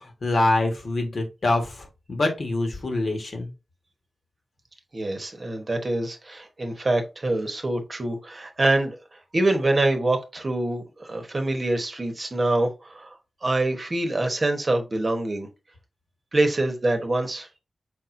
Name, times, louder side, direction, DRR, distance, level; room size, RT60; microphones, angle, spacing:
voice 1, 0.0-3.5, left 2 dB, 60° left, 1.4 m, -25 dB
voice 2, 4.9-9.0 9.3-15.5 16.3-17.5, right 2 dB, 35° right, 1.0 m, -25 dB
4.9 x 4.2 x 2.5 m
wide cardioid pair, 120°, 0 cm